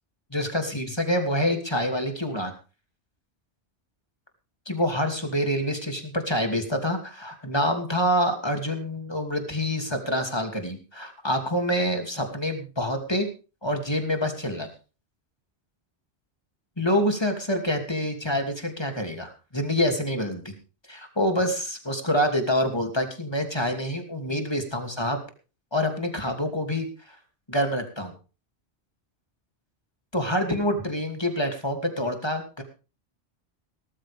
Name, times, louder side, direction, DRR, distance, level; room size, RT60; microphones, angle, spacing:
voice 1, 0.3-2.5 4.7-13.3 13.6-14.7 16.8-20.5 20.9-25.2 25.7-27.2 27.5-28.1 30.1-32.6, equal, 25° left, 5 dB, 2.8 m, -26 dB
18.5 x 14.0 x 3.6 m, 0.34 s
omnidirectional pair, 1.1 m